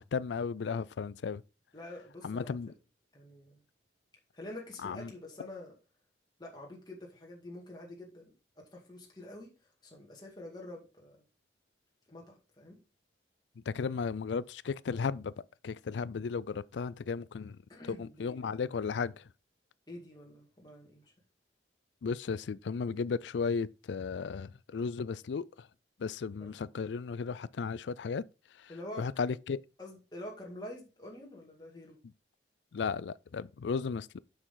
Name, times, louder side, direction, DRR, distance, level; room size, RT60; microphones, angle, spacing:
voice 1, 0.0-1.4 2.2-2.7 4.8-5.1 13.7-15.3 15.6-17.6 17.9-19.2 22.0-25.7 26.0-28.2 29.0-29.6 32.7-34.2, left 5 dB, 80° left, 0.4 m, -35 dB
voice 2, 1.7-2.6 3.1-3.6 4.3-5.7 6.4-9.5 9.8-11.2 12.1-12.8 17.7-18.7 19.9-21.1 26.4-26.5 28.7-29.1 29.8-32.0, left 1 dB, 25° left, 2.1 m, -47 dB
7.3 x 6.4 x 3.8 m
head